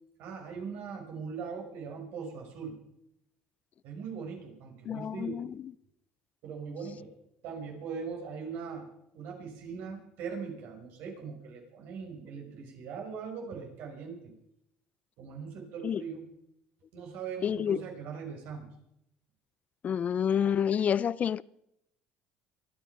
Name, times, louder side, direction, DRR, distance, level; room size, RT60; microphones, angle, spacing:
voice 1, 0.2-2.8 3.8-5.4 6.4-7.1 7.4-8.9 9.1-14.3 15.2-16.3 16.9-18.7, right 6 dB, 70° right, 5.3 m, -40 dB
voice 2, 4.9-5.5 15.8-16.0 17.4-17.8 19.8-21.4, left 8 dB, 40° left, 0.5 m, -28 dB
24.0 x 9.4 x 5.7 m
supercardioid pair, 95°, 4 cm